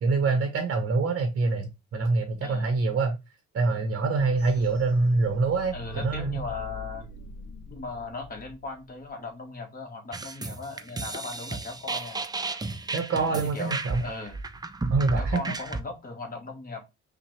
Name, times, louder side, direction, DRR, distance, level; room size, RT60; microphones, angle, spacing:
voice 1, 0.0-3.2 3.5-6.4 12.9-14.0 14.9-15.4, right 3 dB, 45° right, 0.8 m, -25 dB
sound 1, 4.2-9.1, left 1 dB, 85° left, 0.8 m, -42 dB
voice 2, 5.7-7.1 7.7-12.2 13.3-13.7 14.0-14.4 15.2-16.8, left 3 dB, 30° left, 1.3 m, -38 dB
sound 2, 10.1-15.8, right 3 dB, 15° right, 0.4 m, -33 dB
5.6 x 2.2 x 3.1 m
cardioid pair, 90°, 30 cm